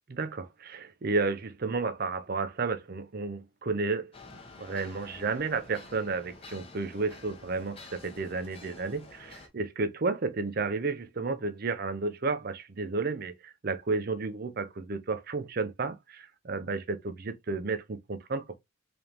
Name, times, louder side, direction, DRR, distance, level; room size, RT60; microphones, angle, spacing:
voice 1, 0.1-18.6, right 3 dB, 45° right, 0.5 m, -32 dB
sound 1, 4.1-9.5, left 3 dB, 25° left, 0.7 m, -50 dB
3.7 x 3.4 x 2.8 m
head